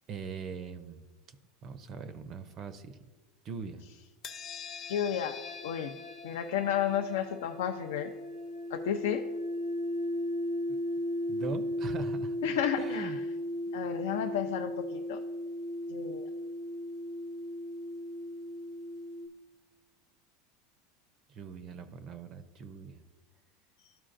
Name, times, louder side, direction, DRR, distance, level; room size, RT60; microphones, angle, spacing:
voice 1, 0.1-1.0 1.6-3.0 3.4-3.8 10.7-10.8 11.3-12.4 12.8-13.2 13.7-13.9 21.3-23.0, right 5 dB, 35° right, 11 dB, 0.4 m, -41 dB
sound 1, 4.2-19.3, left 1 dB, 30° left, 0.6 m, -36 dB
voice 2, 4.9-5.4 5.6-5.9 6.2-8.1 8.7-9.3 12.4-13.1 13.7-15.2 15.9-16.2, left 9 dB, 85° left, 5 dB, 0.4 m, -32 dB
13.0 x 4.4 x 2.5 m, 1.3 s
supercardioid pair, 155°, 0 cm